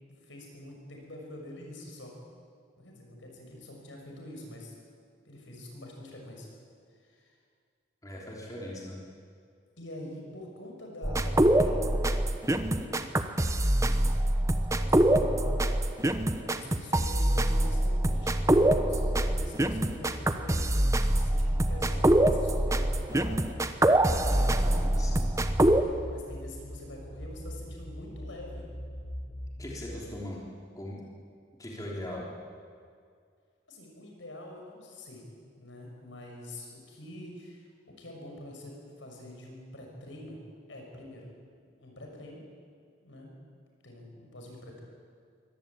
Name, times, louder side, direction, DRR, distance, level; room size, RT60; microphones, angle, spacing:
voice 1, 0.1-2.2 2.8-4.7 5.3-6.5 7.0-7.3 9.8-12.1 12.4-13.1 13.6-14.3 14.6-15.8 16.4-23.7 24.1-25.3 26.1-28.7 33.7-35.3 35.6-40.4 40.7-41.3 41.8-42.4 43.0-43.3 43.8-44.8, left 1 dB, 75° left, 0 dB, 6.3 m, -45 dB
voice 2, 8.0-9.0 23.9-25.4 29.6-30.4 30.7-31.0 31.6-32.2, left 1 dB, 20° left, -3 dB, 3.5 m, -40 dB
sound 1, 11.0-25.8, right 1 dB, 15° right, 0.9 m, -25 dB
sound 2, 18.6-29.9, equal, 60° left, 3.6 m, -41 dB
23.0 x 18.0 x 8.7 m, 2.2 s
head